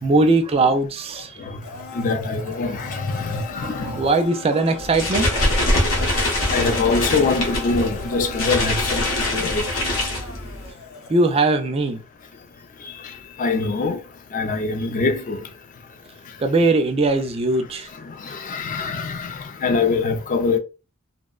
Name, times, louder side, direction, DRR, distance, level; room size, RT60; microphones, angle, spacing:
voice 1, 0.0-1.3 3.6-5.6 6.1-6.3 6.8-6.9 11.1-12.0 16.4-17.9, right 2 dB, 25° right, 0.4 m, -20 dB
Domestic sounds home sounds, 1.6-11.5 11.8-11.9, left 3 dB, 85° left, 0.6 m, -37 dB
voice 2, 1.9-4.0 6.5-9.7 13.0-14.0 14.3-15.4 18.0-20.6, left 4 dB, 40° left, 0.4 m, -24 dB
sound 1, 4.8-10.7, left 1 dB, 65° left, 0.9 m, -23 dB
2.6 x 2.1 x 2.3 m
head